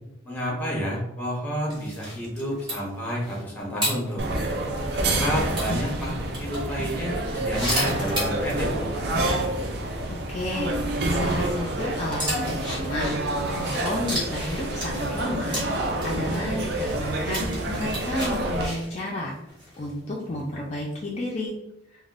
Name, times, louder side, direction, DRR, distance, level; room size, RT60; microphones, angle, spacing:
voice 1, 0.2-4.2 4.9-8.9, equal, 10° left, -3 dB, 0.8 m, -30 dB
sound 1, 1.7-5.1 5.5-6.6 7.2-8.7 9.0-9.1 9.4-9.5 11.0-20.4 20.9-21.2, equal, 25° right, 1.1 m, -34 dB
sound 2, 4.2-18.7, right 1 dB, 55° right, 0.4 m, -28 dB
voice 2, 10.1-10.8 11.1-13.2 13.6-15.6 16.0-19.3 19.8-21.5, left 1 dB, 35° left, -3 dB, 0.4 m, -31 dB
3.3 x 2.3 x 2.5 m, 0.89 s
head